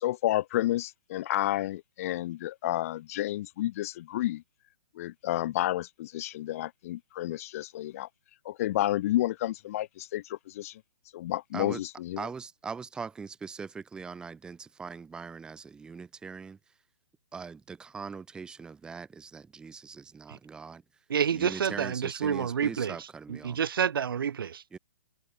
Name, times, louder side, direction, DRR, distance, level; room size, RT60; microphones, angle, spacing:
voice 1, 0.0-4.4 5.0-8.1 8.4-10.8 11.1-12.3, left 14 dB, 40° left, 0.6 m, -30 dB
voice 2, 12.2-16.6 17.3-20.8 21.3-23.6 24.7-24.8, right 5 dB, 5° right, 0.7 m, -41 dB
voice 3, 21.1-23.0 23.3-24.6, right 7 dB, 70° right, 1.3 m, -28 dB
hypercardioid pair, 150°, 12 cm